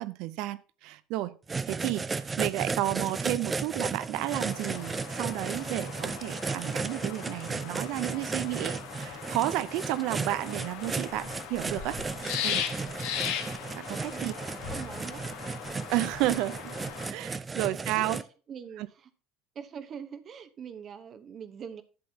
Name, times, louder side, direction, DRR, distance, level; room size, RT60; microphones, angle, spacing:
voice 1, 0.0-1.4 1.7-12.0 12.4-12.6 13.7-14.3 15.9-16.7 17.1-18.2 18.8-18.9, right 16 dB, 65° right, 0.6 m, -32 dB
sound 1, 1.5-18.2, right 4 dB, 20° right, 0.5 m, -35 dB
sound 2, 4.3-17.1, left 9 dB, 75° left, 1.2 m, -39 dB
voice 2, 14.1-15.2 18.0-19.1 19.5-21.8, right 7 dB, 45° right, 1.0 m, -43 dB
11.5 x 7.8 x 2.8 m
supercardioid pair, 90°, 0 cm